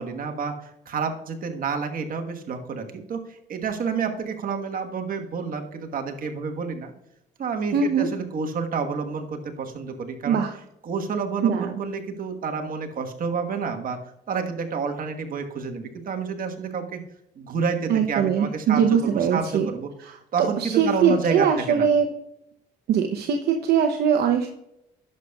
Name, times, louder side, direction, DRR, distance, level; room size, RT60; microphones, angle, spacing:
voice 1, 0.0-6.9 7.4-10.4 10.8-14.0 14.3-17.0 17.3-19.9 20.3-21.9, right 5 dB, 55° right, 5 dB, 1.4 m, -29 dB
voice 2, 7.7-8.1 10.3-10.5 11.4-11.7 17.9-19.7 20.0-22.1 22.9-24.5, right 7 dB, 70° right, 5 dB, 0.8 m, -22 dB
11.0 x 6.6 x 2.3 m, 0.80 s
cardioid pair, 80°, 17 cm